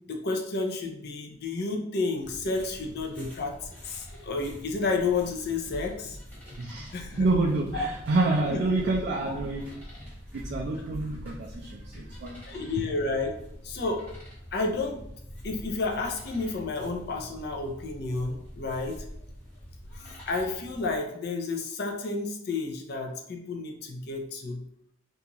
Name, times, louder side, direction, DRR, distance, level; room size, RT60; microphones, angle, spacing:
voice 1, 0.1-6.2 6.9-7.3 7.7-7.9 8.5-8.6 12.5-13.3 13.6-14.0 14.5-15.0 15.4-19.0 20.0-24.7, left 3 dB, 50° left, 2 dB, 0.4 m, -31 dB
sound 1, 2.2-21.0, equal, 10° left, 0.8 m, -45 dB
sound 2, 5.7-12.1, equal, 10° right, 1.2 m, -43 dB
voice 2, 6.6-6.9 7.2-9.9 10.3-12.7, right 2 dB, 50° right, -1 dB, 0.3 m, -28 dB
2.6 x 2.3 x 2.9 m, 0.76 s
head